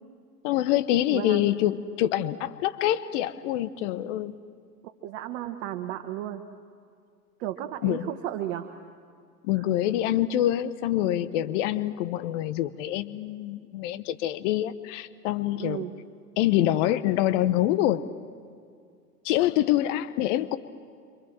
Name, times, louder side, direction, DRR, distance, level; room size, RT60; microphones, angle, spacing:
voice 1, 0.4-4.3 7.8-8.1 9.4-15.8 16.4-18.1 19.2-20.6, left 13 dB, 50° left, 14 dB, 1.1 m, -25 dB
voice 2, 1.1-1.5 4.8-6.4 7.4-8.8 9.5-9.6 15.6-15.9, right 12 dB, 50° right, 6 dB, 1.5 m, -34 dB
29.0 x 25.0 x 7.7 m, 2.2 s
figure-of-eight pair, 90°, 47 cm